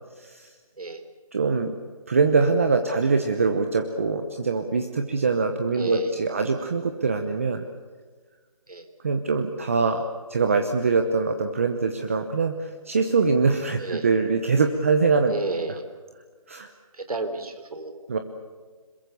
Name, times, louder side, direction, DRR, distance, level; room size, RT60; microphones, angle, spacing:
voice 1, 0.2-0.5 1.3-1.7 2.1-7.6 9.0-10.0 10.3-15.3 16.5-16.7 18.1-18.2, right 4 dB, 25° right, 7 dB, 1.0 m, -23 dB
voice 2, 5.7-6.1 8.7-8.9 13.8-14.1 15.3-15.8 16.9-18.0, right 3 dB, 85° right, 8 dB, 3.7 m, -31 dB
26.5 x 22.5 x 7.0 m, 1.5 s
hypercardioid pair, 175°, 18 cm